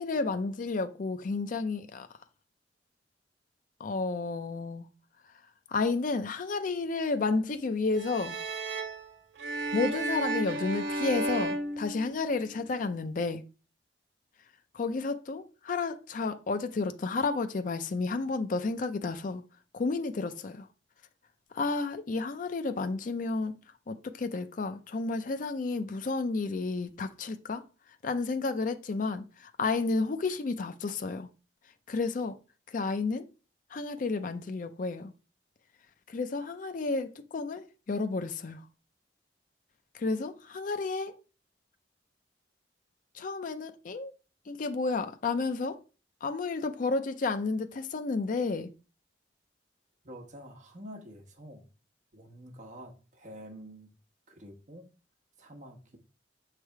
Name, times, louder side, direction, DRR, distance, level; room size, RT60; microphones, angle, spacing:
voice 1, 0.0-2.1 3.8-4.8 5.7-8.4 9.7-13.4 14.7-19.4 19.7-20.7 21.5-23.5 23.9-27.6 28.0-31.3 31.9-32.4 32.7-33.3 33.7-35.1 36.1-38.6 39.9-41.2 43.1-44.1 44.5-45.8 46.2-48.7, left 3 dB, 45° left, 0.4 m, -31 dB
sound 1, 7.9-12.5, right 2 dB, 85° right, 1.1 m, -33 dB
voice 2, 50.0-51.6 52.1-53.9 54.3-54.9 55.4-56.0, equal, 45° right, 1.1 m, -47 dB
6.3 x 3.3 x 4.6 m
head